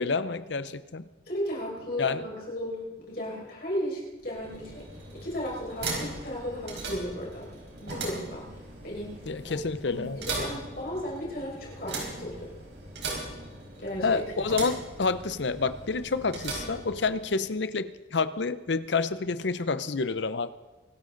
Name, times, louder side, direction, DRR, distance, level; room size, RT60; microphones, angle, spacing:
voice 1, 0.0-1.1 2.0-2.2 9.3-10.2 14.0-20.5, left 4 dB, 70° left, 14 dB, 0.7 m, -28 dB
voice 2, 1.3-7.5 7.8-9.6 9.8-12.5 13.8-14.2, equal, 50° left, -3 dB, 5.6 m, -35 dB
sound 1, 4.2-17.5, right 3 dB, 70° right, 4.7 m, -39 dB
24.5 x 12.5 x 3.9 m, 1.2 s
head